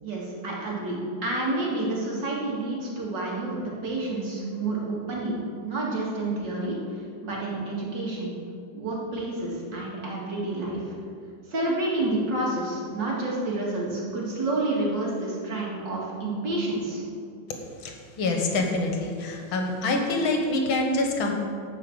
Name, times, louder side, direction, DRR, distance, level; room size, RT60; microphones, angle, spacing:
voice 1, 0.0-5.4 5.6-6.8 7.2-8.3 8.7-10.8 11.5-17.0, right 2 dB, 60° right, -4 dB, 3.0 m, -29 dB
voice 2, 17.8-21.3, left 2 dB, 80° left, 2 dB, 2.1 m, -26 dB
12.0 x 5.7 x 7.9 m, 2.3 s
omnidirectional pair, 2.2 m